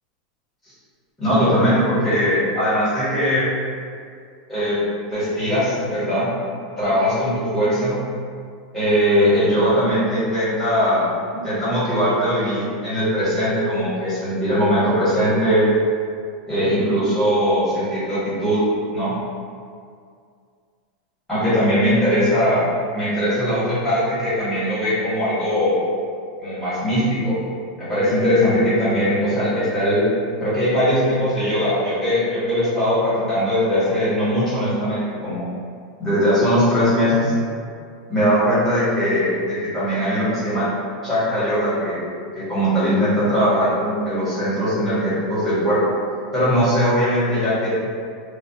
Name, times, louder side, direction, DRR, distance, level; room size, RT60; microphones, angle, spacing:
voice 1, 1.2-3.4 4.5-4.8 5.1-6.3 6.8-8.0 8.7-11.1 11.3-15.7 16.5-18.7 18.9-19.1 21.3-22.7 22.9-25.8 26.4-27.3 27.8-30.1 30.4-35.4 36.0-37.3 38.1-40.7 41.0-42.0 42.4-45.8 46.3-47.7, equal, 5° left, -13 dB, 1.1 m, -20 dB
2.3 x 2.0 x 2.7 m, 2.3 s
supercardioid pair, 155°, 4 cm